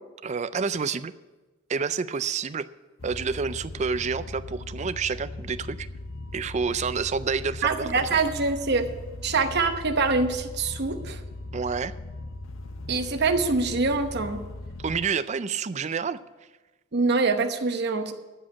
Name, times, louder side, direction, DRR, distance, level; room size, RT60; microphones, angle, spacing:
voice 1, 0.2-1.1 1.7-2.7 3.0-5.9 6.3-8.2 11.5-11.9 14.8-16.2, right 5 dB, 35° right, 14 dB, 0.4 m, -29 dB
sound 1, 3.0-15.0, left 2 dB, 65° left, 0.7 m, -39 dB
voice 2, 7.6-8.9 9.2-11.2 12.9-14.4 16.9-18.1, right 4 dB, 50° right, 7 dB, 1.0 m, -24 dB
14.0 x 5.1 x 8.2 m, 1.2 s
head